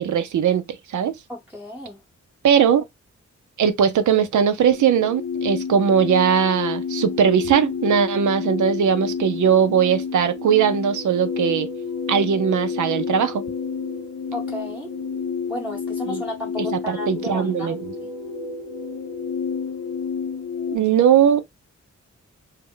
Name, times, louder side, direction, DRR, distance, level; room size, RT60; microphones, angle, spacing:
voice 1, 0.0-1.1 2.4-2.8 3.6-11.7 12.1-13.4 16.1-16.2 16.6-17.8 20.7-21.5, right 8 dB, 75° right, 0.5 m, -19 dB
voice 2, 1.3-2.0 14.3-14.9 15.5-18.1 20.8-20.9, left 1 dB, 5° right, 0.8 m, -34 dB
sound 1, 4.6-20.8, left 5 dB, 85° left, 0.9 m, -29 dB
2.1 x 2.0 x 3.6 m
cardioid pair, 65°, 30 cm